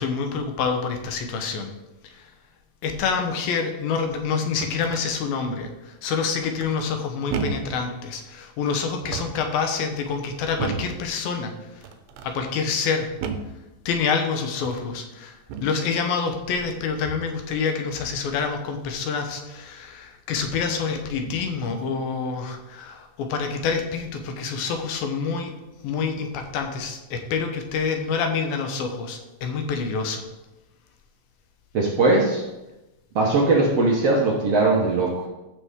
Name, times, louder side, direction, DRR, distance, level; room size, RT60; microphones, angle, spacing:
voice 1, 0.0-1.7 2.8-11.5 12.2-13.1 13.9-25.5 25.8-30.2, left 5 dB, 80° left, 5 dB, 2.8 m, -27 dB
sound 1, 4.3-5.1 6.6-7.0 7.3-7.8 8.9-9.5 10.6-11.0 11.8-12.3 13.2-13.6 14.5-14.9 15.5-15.8 17.0-17.4 19.5-19.6 20.4-20.8 21.1-21.6, right 5 dB, 90° right, 2.7 m, -33 dB
voice 2, 31.7-32.4 33.2-35.3, right 3 dB, 60° right, -2 dB, 1.7 m, -20 dB
14.0 x 6.0 x 3.6 m, 1.0 s
omnidirectional pair, 4.2 m